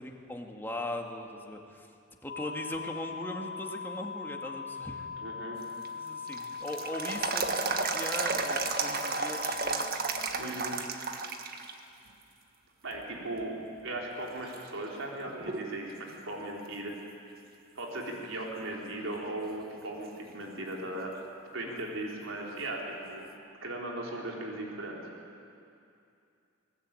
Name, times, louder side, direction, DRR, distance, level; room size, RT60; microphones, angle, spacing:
voice 1, 0.0-1.9 2.2-5.1 5.9-9.8 10.3-10.7 21.7-21.8, left 1 dB, 10° left, 2 dB, 2.1 m, -40 dB
sound 1, 2.3-9.9, left 5 dB, 45° left, 1.0 m, -40 dB
voice 2, 5.2-5.6 10.4-10.8 12.8-13.5 13.8-16.9 17.8-21.1 21.5-23.3 23.6-25.0, right 1 dB, 85° right, -1 dB, 4.1 m, -37 dB
sound 2, 5.6-11.7 12.1-12.2 13.0-13.4 14.0-14.1 14.5-15.8 16.1-16.2 19.5-19.6 22.6-22.7, right 4 dB, 50° right, 1.6 m, -33 dB
21.5 x 19.5 x 9.1 m, 2.6 s
head